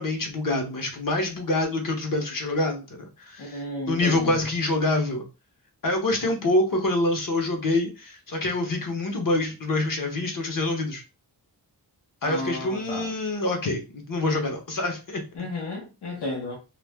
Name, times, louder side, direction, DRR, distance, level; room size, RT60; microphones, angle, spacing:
voice 1, 0.0-5.2 5.8-11.0 12.2-15.2, left 2 dB, 55° left, 1.0 m, -26 dB
voice 2, 3.4-4.4 12.2-13.1 15.3-16.6, left 2 dB, 80° left, 0.9 m, -33 dB
2.4 x 2.1 x 3.4 m
cardioid pair, 65°, 40 cm